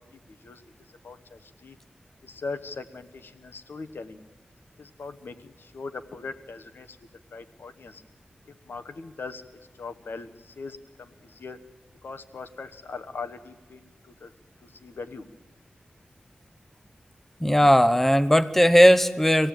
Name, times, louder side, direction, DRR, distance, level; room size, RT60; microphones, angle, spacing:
voice 1, 0.3-0.6 1.0-1.8 2.2-4.2 4.8-7.0 7.3-8.0 8.5-9.4 9.8-11.6 12.0-13.9 14.2-14.3 14.6-15.3, left 4 dB, 90° left, 10 dB, 1.2 m, -40 dB
voice 2, 17.4-19.5, equal, 10° left, 13 dB, 1.0 m, -17 dB
25.0 x 16.5 x 8.9 m, 1.2 s
wide cardioid pair, 70°, 4 cm